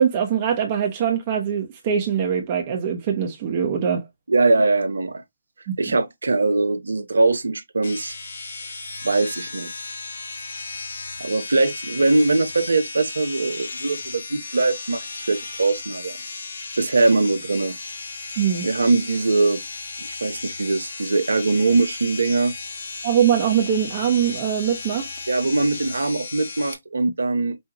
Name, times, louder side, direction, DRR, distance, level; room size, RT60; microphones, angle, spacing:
voice 1, 0.0-4.1 5.7-5.8 18.4-18.7 23.0-25.1, right 8 dB, 35° right, 0.9 m, -22 dB
voice 2, 4.3-5.2 5.8-8.2 9.0-9.7 11.2-16.2 16.8-17.8 18.6-19.6 20.0-22.5 25.3-27.6, right 3 dB, 75° right, 0.8 m, -21 dB
sound 1, 7.8-26.7, left 3 dB, 65° left, 1.6 m, -35 dB
5.4 x 2.3 x 2.8 m
figure-of-eight pair, 145°, 0 cm